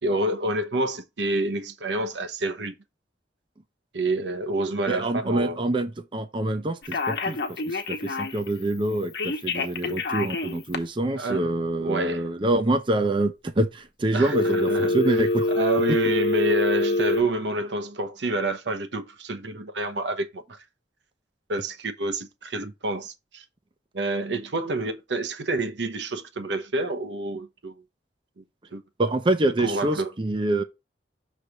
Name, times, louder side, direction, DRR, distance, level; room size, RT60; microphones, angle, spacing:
voice 1, 0.0-2.7 3.9-5.6 11.2-12.3 14.1-20.6 21.5-23.4 23.9-27.8 28.4-28.5 28.7-28.8 29.6-30.1, right 2 dB, 80° right, 1.0 m, -28 dB
voice 2, 4.9-15.5 29.0-30.6, right 1 dB, 30° right, 0.5 m, -26 dB
Telephone, 6.8-8.5 9.1-10.8 14.3-17.2, left 2 dB, 65° left, 1.0 m, -25 dB
6.5 x 3.3 x 5.8 m
head